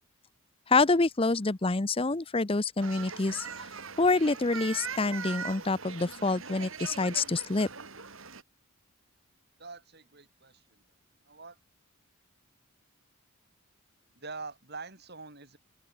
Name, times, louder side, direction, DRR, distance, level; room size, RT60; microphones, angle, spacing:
voice 1, 0.7-3.5 4.0-7.7, left 3 dB, 25° left, 0.7 m, -27 dB
sound 1, 2.8-8.4, right 6 dB, 65° right, 4.4 m, -41 dB
voice 2, 9.6-10.8 11.2-11.6 14.1-15.6, right 4 dB, 50° right, 6.3 m, -44 dB
open air
head